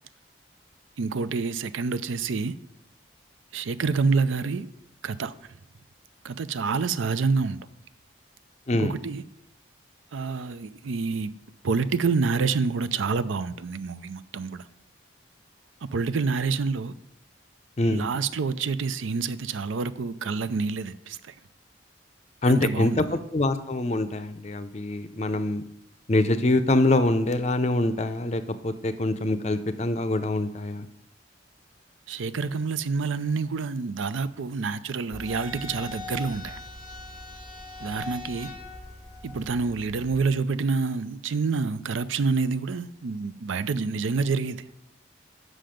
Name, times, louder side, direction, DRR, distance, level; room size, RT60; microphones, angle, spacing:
voice 1, 1.0-2.5 3.5-4.7 5.0-5.3 6.2-7.6 8.7-9.2 10.1-11.3 11.6-14.7 15.9-16.9 17.8-21.3 22.5-23.1 32.1-36.6 37.8-38.5 39.2-44.6, right 4 dB, 85° right, 0.5 m, -27 dB
voice 2, 22.4-25.6 26.1-30.9, left 2 dB, 35° left, 0.5 m, -24 dB
sound 1, 35.1-40.1, left 3 dB, 40° right, 1.6 m, -40 dB
7.7 x 6.4 x 5.1 m
head